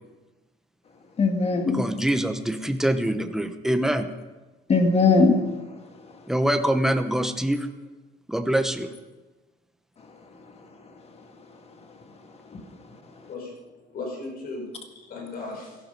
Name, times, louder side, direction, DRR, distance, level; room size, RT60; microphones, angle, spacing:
voice 1, 1.2-1.9 4.7-6.3 10.0-13.3, left 3 dB, 30° left, 2.0 m, -25 dB
voice 2, 1.8-4.1 6.3-7.7 8.3-8.9, right 1 dB, ahead, 1.0 m, -24 dB
voice 3, 13.1-15.9, left 3 dB, 50° left, 5.4 m, -37 dB
17.0 x 14.5 x 5.4 m
cardioid pair, 150°, 19 cm